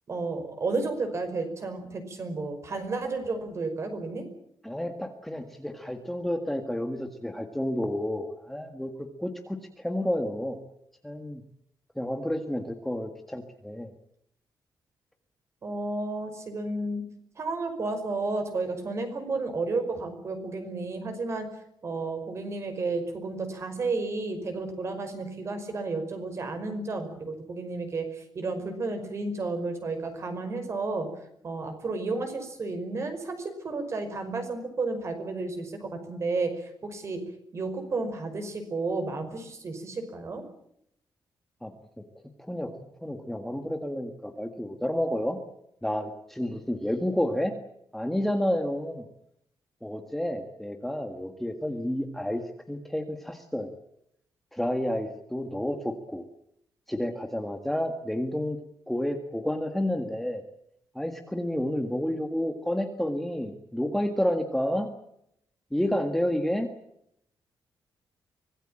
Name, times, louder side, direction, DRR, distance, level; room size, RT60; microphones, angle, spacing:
voice 1, 0.1-4.3 15.6-17.0 17.4-21.5 21.8-31.1 31.4-37.2 37.5-40.4, right 3 dB, 35° right, 7 dB, 5.3 m, -32 dB
voice 2, 4.6-10.6 11.0-11.4 12.0-13.9 41.6-41.7 42.5-42.7 43.0-45.4 45.8-47.5 47.9-49.0 49.8-52.4 52.7-53.8 54.5-56.3 56.9-58.6 58.9-60.4 61.0-64.9 65.7-66.7, left 1 dB, 5° left, 5 dB, 1.7 m, -30 dB
25.0 x 19.0 x 8.9 m, 0.75 s
wide cardioid pair, 175°, 8 cm